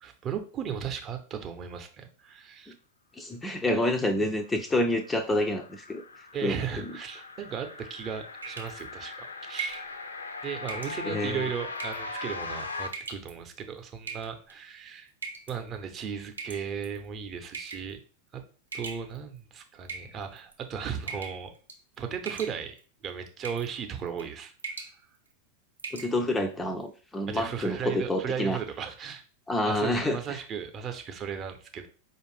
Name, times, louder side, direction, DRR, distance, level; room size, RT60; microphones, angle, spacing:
voice 1, 0.0-2.7 6.3-9.9 10.4-15.1 15.5-18.0 18.3-18.4 18.7-21.5 22.0-22.8 23.0-24.5 27.3-29.2 29.6-31.9, right 7 dB, 30° right, 6 dB, 0.6 m, -36 dB
voice 2, 3.2-6.0 6.4-6.5 11.1-11.4 25.9-28.6 29.5-30.4, left 1 dB, 10° left, 7 dB, 0.4 m, -28 dB
sound 1, 4.5-12.9, left 3 dB, 75° left, 0.5 m, -40 dB
sound 2, 8.4-8.8 9.6-9.9 10.7-11.0 11.8-12.1 12.9-13.3 14.1-14.5 15.2-15.6 16.4-17.0 17.5-17.9 18.7-19.4 19.9-20.5 21.1-21.4 21.7-22.0 22.3-22.8 23.4-23.7 24.1-24.3 24.6-24.9 25.3-25.4 25.8-26.1, right 5 dB, 75° right, 0.7 m, -39 dB
4.8 x 2.5 x 3.2 m, 0.39 s
figure-of-eight pair, 90°, 0 cm